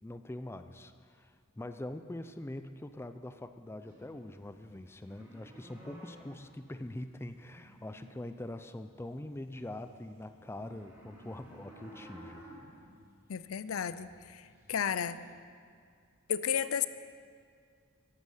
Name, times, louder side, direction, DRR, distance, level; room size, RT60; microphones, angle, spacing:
voice 1, 0.0-12.5, left 1 dB, 10° left, 9 dB, 0.4 m, -43 dB
sound 1, 3.8-8.5 8.9-15.3, right 1 dB, 10° right, 2.7 m, -55 dB
voice 2, 13.3-15.2 16.3-16.9, left 8 dB, 80° left, 14 dB, 0.5 m, -33 dB
14.0 x 11.0 x 5.6 m, 2.2 s
head